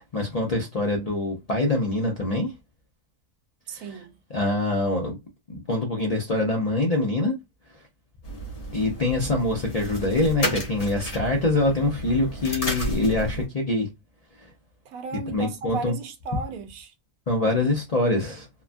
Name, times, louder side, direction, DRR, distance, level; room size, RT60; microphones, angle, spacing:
voice 1, 0.0-2.5 3.7-4.0 4.3-5.2 5.5-7.3 7.7-7.8 8.7-13.9 14.4-14.5 15.3-15.9 17.3-18.5, left 2 dB, 50° left, 0.4 m, -24 dB
voice 2, 3.7-4.1 14.9-16.9, right 5 dB, 85° right, 1.1 m, -35 dB
sound 1, 8.2-13.5, right 1 dB, 30° left, 0.8 m, -32 dB
2.9 x 2.2 x 2.5 m
omnidirectional pair, 1.5 m